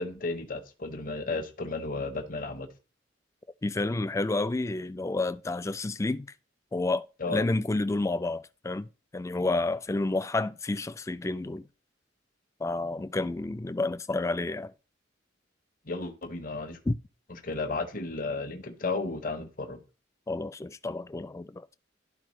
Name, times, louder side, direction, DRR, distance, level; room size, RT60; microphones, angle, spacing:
voice 1, 0.0-2.7 7.2-7.4 15.9-16.8 17.4-19.8, left 3 dB, 45° left, 1.0 m, -33 dB
voice 2, 3.6-6.3 6.7-11.6 12.6-14.7 16.9-17.0 20.3-21.7, left 2 dB, 15° left, 0.3 m, -30 dB
12.5 x 4.3 x 3.1 m
head